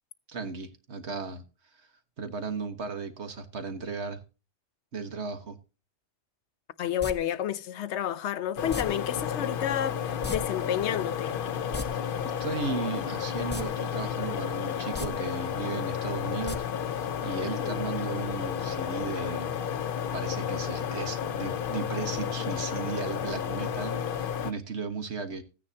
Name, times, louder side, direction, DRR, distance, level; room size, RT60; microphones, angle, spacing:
voice 1, 0.3-1.4 1.7-1.9 2.2-4.2 4.9-5.6 11.9-25.4, right 4 dB, 85° right, 1.7 m, -36 dB
voice 2, 6.8-11.4 17.4-17.8, left 10 dB, 85° left, 1.0 m, -30 dB
sound 1, 7.0-7.1 8.7-8.8 10.2-10.4 10.6-10.7 11.6-11.9 13.5-13.7 14.0-14.1 14.8-15.1 16.5-16.6 16.9-17.0, left 2 dB, 10° left, 0.9 m, -34 dB
sound 2, 8.6-24.5, left 8 dB, 55° left, 0.9 m, -32 dB
15.0 x 9.7 x 2.8 m
omnidirectional pair, 1.1 m